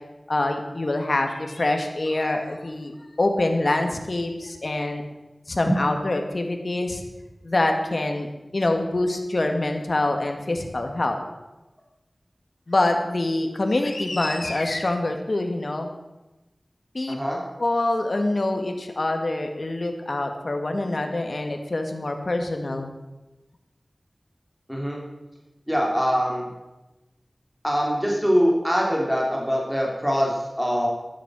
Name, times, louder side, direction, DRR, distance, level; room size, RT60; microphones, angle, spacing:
voice 1, 0.3-5.0 5.5-7.0 7.4-8.3 8.5-11.2 12.7-15.9 16.9-17.2 17.6-22.9, left 2 dB, 60° left, 4 dB, 2.0 m, -25 dB
voice 2, 17.1-17.4 24.7-25.0 25.7-26.5 27.6-30.9, equal, 5° right, -2 dB, 3.0 m, -23 dB
12.5 x 10.5 x 6.2 m, 1.0 s
wide cardioid pair, 65°, 0 cm